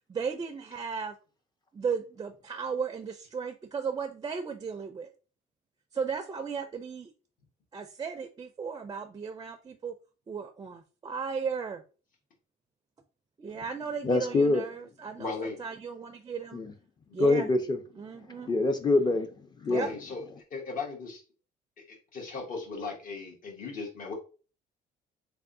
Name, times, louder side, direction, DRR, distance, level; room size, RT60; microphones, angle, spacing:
voice 1, 0.1-1.1 1.7-5.1 5.9-7.1 7.7-9.9 10.3-11.8 13.4-15.3 15.6-16.6 17.1-17.5 18.0-18.5 19.7-19.9, right 6 dB, 25° right, 0.4 m, -35 dB
voice 2, 14.0-14.6 16.5-16.7 17.2-17.8 18.4-19.3 19.6-19.9, left 2 dB, 25° left, 0.6 m, -25 dB
voice 3, 15.2-15.6 19.6-21.2 21.9-24.1, left 4 dB, 55° left, 1.5 m, -37 dB
3.5 x 3.4 x 2.6 m
cardioid pair, 110°, 17 cm